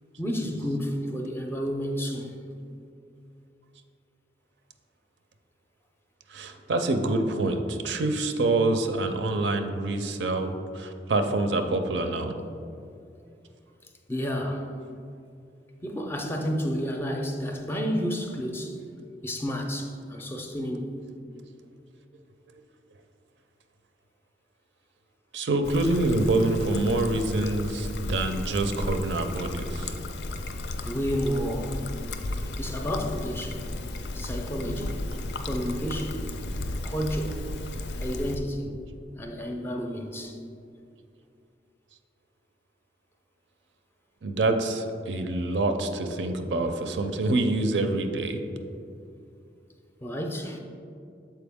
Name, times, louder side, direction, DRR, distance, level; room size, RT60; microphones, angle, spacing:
voice 1, 0.2-2.4 14.1-14.7 15.8-18.8 19.2-21.0 30.8-31.8 32.6-33.7 34.1-35.0 35.4-36.3 36.8-37.5 37.9-38.8 39.2-40.4 50.0-50.6, equal, 15° left, 0.4 m, -31 dB
voice 2, 6.3-12.3 25.3-29.9 44.2-48.4, right 2 dB, 85° right, 0.5 m, -26 dB
Trickle dribble, 25.6-38.4, left 2 dB, 70° left, 0.4 m, -34 dB
6.9 x 4.4 x 3.5 m
head